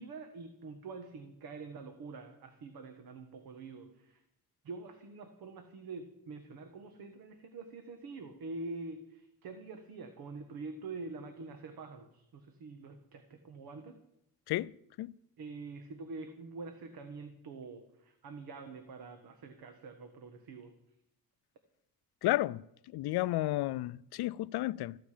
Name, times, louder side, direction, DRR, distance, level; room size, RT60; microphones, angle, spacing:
voice 1, 0.0-4.2 4.6-14.0 15.4-20.7, right 3 dB, 70° right, 1.5 m, -46 dB
voice 2, 22.2-25.0, left 16 dB, 90° left, 0.5 m, -32 dB
14.5 x 14.0 x 5.0 m
cardioid pair, 150°, 37 cm